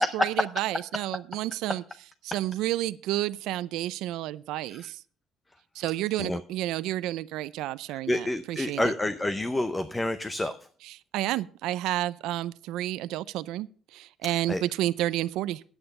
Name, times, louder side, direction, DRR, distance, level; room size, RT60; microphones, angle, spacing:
voice 1, 0.0-1.8 2.2-5.0 5.7-8.9 10.8-15.6, right 14 dB, 85° right, 16 dB, 0.5 m, -31 dB
voice 2, 7.9-10.5 14.2-14.6, left 1 dB, 10° left, 11 dB, 0.6 m, -28 dB
10.0 x 8.7 x 5.3 m, 0.43 s
cardioid pair, 150°, 0 cm